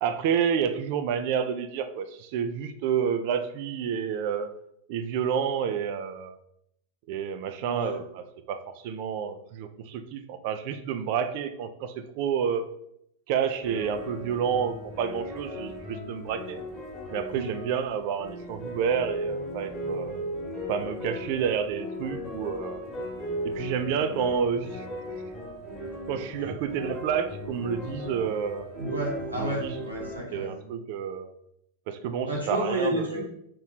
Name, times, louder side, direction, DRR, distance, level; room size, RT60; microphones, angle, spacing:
voice 1, 0.0-4.5 4.9-6.4 7.1-12.6 13.3-16.6 17.1-20.2 20.7-22.8 23.4-24.9 26.1-28.7 29.3-29.7 30.3-31.3 31.9-33.3, right 7 dB, 45° right, 9 dB, 0.3 m, -29 dB
voice 2, 7.6-7.9 17.3-17.5 26.4-26.5 28.7-30.6 32.3-33.2, right 1 dB, 85° right, -4 dB, 1.3 m, -31 dB
sound 1, 13.6-30.2, equal, 15° left, 1.2 m, -37 dB
3.1 x 3.0 x 4.0 m, 0.74 s
figure-of-eight pair, 90°, 0 cm